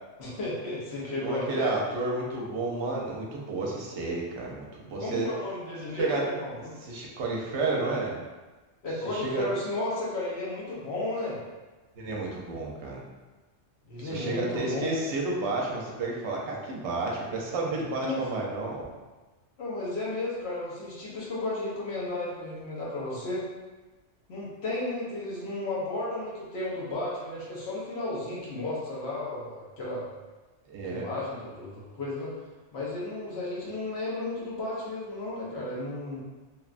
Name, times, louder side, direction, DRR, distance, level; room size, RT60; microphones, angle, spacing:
voice 1, 0.2-1.7 5.0-6.7 8.8-11.4 13.9-15.0 18.0-18.2 19.6-23.4 24.3-30.1 30.8-32.3 32.7-36.2, left 2 dB, 65° left, -6 dB, 1.0 m, -33 dB
voice 2, 1.2-5.3 5.9-6.3 6.6-8.2 9.1-9.4 12.0-13.0 14.0-18.8 30.7-31.1, right 3 dB, 70° right, -2 dB, 0.9 m, -31 dB
2.9 x 2.2 x 2.4 m, 1.2 s
omnidirectional pair, 1.2 m